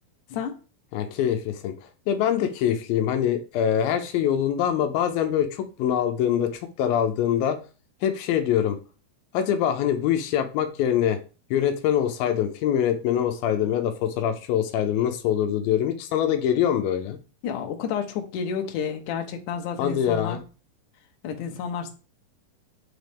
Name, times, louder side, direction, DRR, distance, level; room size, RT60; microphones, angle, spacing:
voice 1, 0.9-1.7 2.1-7.6 8.0-8.8 9.3-11.2 11.5-17.2 19.8-20.4, left 9 dB, 85° left, 6 dB, 2.5 m, -24 dB
voice 2, 17.4-20.4 21.2-21.9, left 7 dB, 70° left, 4 dB, 2.3 m, -30 dB
9.3 x 4.1 x 3.5 m, 0.34 s
omnidirectional pair, 4.1 m